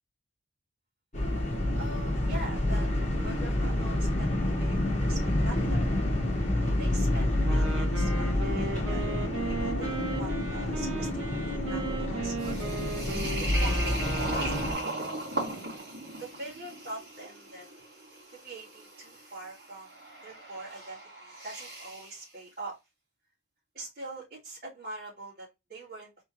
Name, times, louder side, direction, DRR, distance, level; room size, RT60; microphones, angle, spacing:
sound 1, 1.1-14.7, left 1 dB, 35° left, 1.3 m, -28 dB
voice 1, 1.8-2.9 3.2-4.3 4.6-5.2 5.4-5.9 6.3-6.5 6.8-9.0 9.4-11.4 11.6-12.7 13.4-14.9 16.2-17.7 18.4-19.9 20.2-22.8 23.7-26.1, right 2 dB, 40° right, -13 dB, 2.9 m, -43 dB
Wind instrument woodwind instrument, 7.4-15.3, right 3 dB, 80° right, 1.0 m, -37 dB
sound 2, 12.4-22.2, right 2 dB, 60° right, 2.6 m, -38 dB
4.3 x 3.4 x 3.1 m, 0.22 s
head